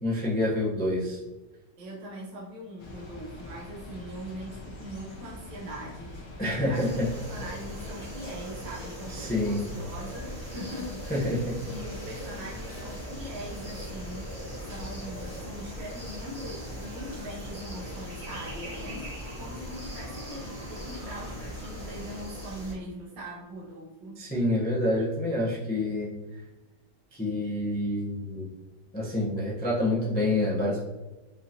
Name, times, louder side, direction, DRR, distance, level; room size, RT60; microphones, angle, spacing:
voice 1, 0.0-1.2 6.4-7.1 9.1-9.7 11.1-11.6 24.2-26.1 27.1-28.5 28.9-30.8, left 1 dB, 15° left, -6 dB, 0.3 m, -27 dB
voice 2, 1.8-11.4 11.7-14.4 14.7-24.2, equal, 75° right, -4 dB, 1.4 m, -41 dB
sound 1, 2.8-22.2, left 2 dB, 60° left, 1.6 m, -44 dB
sound 2, 6.7-22.7, right 1 dB, 25° right, 0.9 m, -41 dB
5.4 x 2.5 x 2.8 m, 1.1 s
omnidirectional pair, 2.0 m